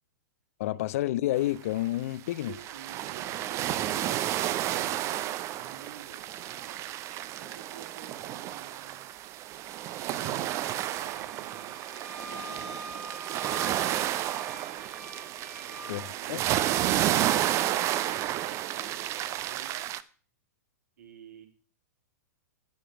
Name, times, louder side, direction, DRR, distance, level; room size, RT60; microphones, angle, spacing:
voice 1, 0.6-2.5 15.9-16.0 16.3-16.4, left 15 dB, 55° left, 0.5 m, -29 dB
sound 1, 1.8-1.9 2.3-20.0, right 13 dB, 30° right, 0.6 m, -31 dB
voice 2, 2.4-6.8 7.4-9.1 10.2-11.9 12.3-13.8 15.5-16.5 16.8-19.9 21.0-21.5, right 7 dB, 65° right, 2.8 m, -51 dB
Wind instrument woodwind instrument, 10.9-16.1, equal, ahead, 1.1 m, -45 dB
9.3 x 6.7 x 6.1 m
figure-of-eight pair, 105°, 10 cm